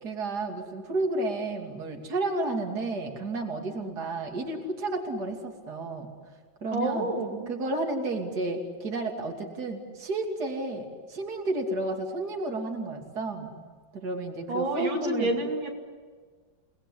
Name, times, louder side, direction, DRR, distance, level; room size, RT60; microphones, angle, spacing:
voice 1, 0.0-6.1 6.6-7.1 7.5-13.6 13.9-15.3, right 2 dB, 55° right, 2 dB, 3.3 m, -31 dB
voice 2, 6.7-7.4 14.5-15.7, right 1 dB, 85° right, 1 dB, 3.3 m, -28 dB
29.5 x 20.5 x 10.0 m, 1.5 s
omnidirectional pair, 2.1 m